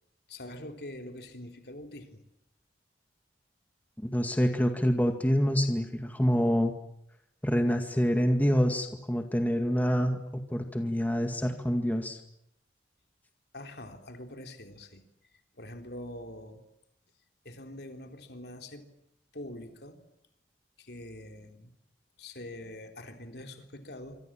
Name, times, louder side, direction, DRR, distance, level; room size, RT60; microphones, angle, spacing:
voice 1, 0.3-2.2 13.5-15.1 15.6-16.6 17.5-18.8 19.3-20.0 20.8-21.7 22.2-24.2, left 1 dB, 60° left, 5 dB, 3.7 m, -44 dB
voice 2, 4.0-6.7 7.4-12.2, equal, 10° left, 5 dB, 2.1 m, -26 dB
26.5 x 26.0 x 7.6 m, 0.79 s
head